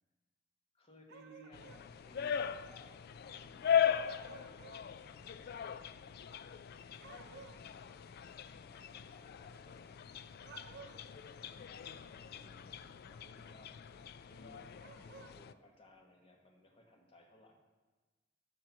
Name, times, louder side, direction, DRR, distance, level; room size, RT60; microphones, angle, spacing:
voice 1, 0.7-5.5 7.0-7.9 8.6-10.0 10.4-11.0 11.4-14.0 14.3-17.5, equal, 30° left, 1 dB, 1.4 m, -62 dB
sound 1, 1.1-1.9 4.0-4.9 7.0-7.6 10.4-11.1 14.8-15.4, right 5 dB, 60° right, 0.7 m, -54 dB
sound 2, 1.5-15.5, left 8 dB, 55° left, 0.3 m, -39 dB
9.4 x 6.0 x 6.0 m, 1.2 s
head